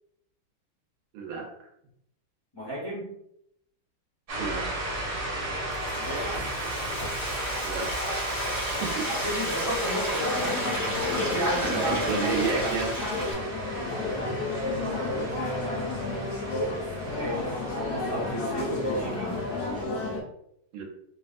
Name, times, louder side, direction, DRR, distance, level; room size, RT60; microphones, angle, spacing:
voice 1, 1.1-1.5 4.4-4.7 7.6-7.9 8.8-9.1 11.2-12.9 20.7-20.8, right 5 dB, 75° right, 1 dB, 1.4 m, -31 dB
voice 2, 2.5-3.1 5.9-6.4 9.1-12.8 14.8-16.3 17.1-19.4, equal, 25° left, -8 dB, 0.5 m, -33 dB
sound 1, 4.3-19.8, right 1 dB, 45° right, 1.0 m, -36 dB
Frying (food), 5.5-13.3, equal, 20° right, 0.6 m, -33 dB
sound 2, 10.2-20.2, left 2 dB, 65° left, 1.0 m, -31 dB
3.3 x 2.6 x 2.4 m, 0.77 s
omnidirectional pair, 2.3 m